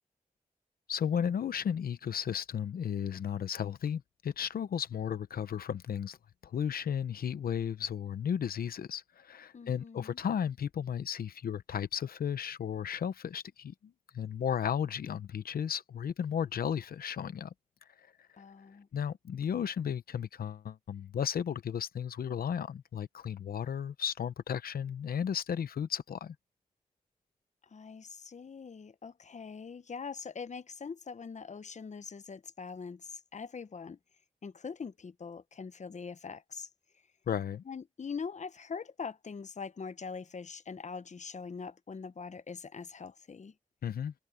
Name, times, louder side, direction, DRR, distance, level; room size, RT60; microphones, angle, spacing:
voice 1, 0.9-6.2 6.4-17.5 18.0-18.1 18.9-26.3 37.3-37.6 43.8-44.1, left 8 dB, 85° left, 0.7 m, -34 dB
voice 2, 9.5-10.2 18.4-18.9 27.6-34.0 34.4-36.7 37.7-43.5, left 5 dB, 50° left, 0.8 m, -43 dB
cardioid pair, 45°, 15 cm